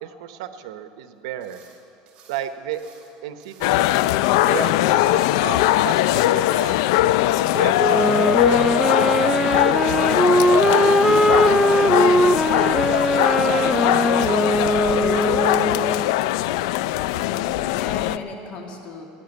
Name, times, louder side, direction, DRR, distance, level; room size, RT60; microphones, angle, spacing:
voice 1, 0.0-1.6 2.3-2.8 3.2-3.9 4.5-6.7 7.5-9.9 10.5-16.0, right 10 dB, 90° right, 10 dB, 0.9 m, -34 dB
sound 1, 1.4-1.8 2.1-3.1 3.4-3.9 4.2-5.4 5.7-6.1 6.4-6.8 7.1-7.5 7.9-8.5 9.9-10.6 11.6-11.9 12.8-13.2 14.0-14.4, right 6 dB, 40° right, 2.9 m, -52 dB
Place Soundsphere, 3.6-18.2, left 15 dB, 80° left, 0.3 m, -20 dB
Wind instrument woodwind instrument, 7.8-16.1, right 1 dB, 5° right, 0.3 m, -20 dB
voice 2, 17.1-19.1, left 4 dB, 45° left, 2 dB, 2.4 m, -36 dB
16.0 x 10.0 x 8.2 m, 3.0 s
supercardioid pair, 140°, 3 cm